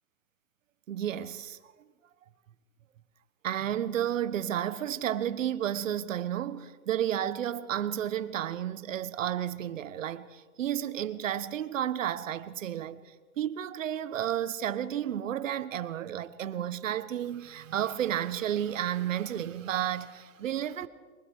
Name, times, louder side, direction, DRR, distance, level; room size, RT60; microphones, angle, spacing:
voice 1, 0.9-1.6 3.4-20.9, right 10 dB, 60° right, 1.3 m, -32 dB
23.0 x 20.0 x 6.4 m
hypercardioid pair, 170°, 43 cm